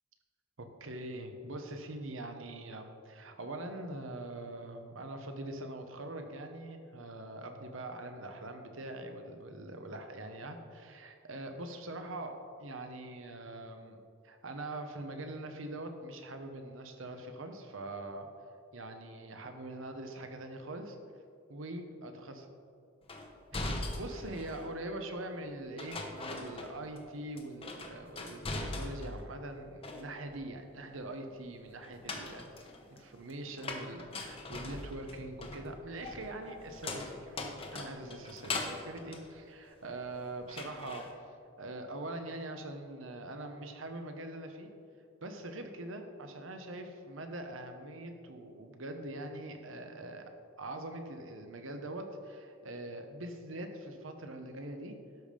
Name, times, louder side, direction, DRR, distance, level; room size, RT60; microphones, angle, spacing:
voice 1, 0.6-18.3 18.7-21.0 21.5-22.4 23.5-41.3 41.6-44.7 45.2-50.2 50.6-55.0, right 1 dB, 75° right, 6 dB, 1.1 m, -43 dB
sound 1, 23.1-24.7 25.8-27.1 27.4-29.2 29.6-30.4 31.8-40.1 40.5-41.1, left 2 dB, 30° left, 1.0 m, -41 dB
12.0 x 5.3 x 5.2 m, 2.4 s
head